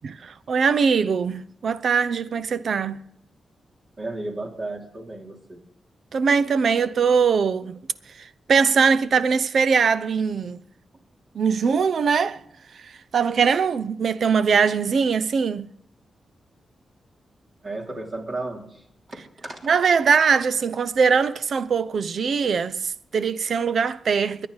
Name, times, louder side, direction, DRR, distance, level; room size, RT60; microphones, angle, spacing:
voice 1, 0.0-3.0 6.1-7.8 8.2-10.6 11.3-12.4 12.8-15.7 19.6-24.5, right 6 dB, 70° right, 0.6 m, -21 dB
voice 2, 4.0-5.6 17.6-19.6, right 2 dB, 45° right, 3.2 m, -34 dB
23.0 x 9.9 x 4.0 m
cardioid pair, 80°, 0 cm